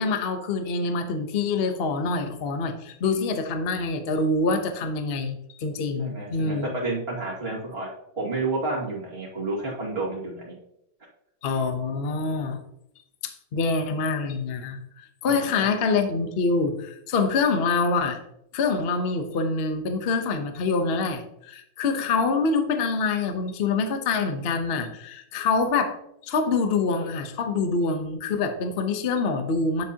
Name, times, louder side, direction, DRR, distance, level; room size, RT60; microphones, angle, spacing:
voice 1, 0.0-6.7 11.4-12.6 13.5-18.2 18.5-26.0 26.2-29.8, left 4 dB, 45° left, 7 dB, 0.8 m, -25 dB
voice 2, 6.0-7.9 8.2-10.5 15.3-15.7, right 2 dB, 35° right, -3 dB, 2.5 m, -30 dB
9.7 x 7.2 x 2.8 m, 0.77 s
omnidirectional pair, 2.0 m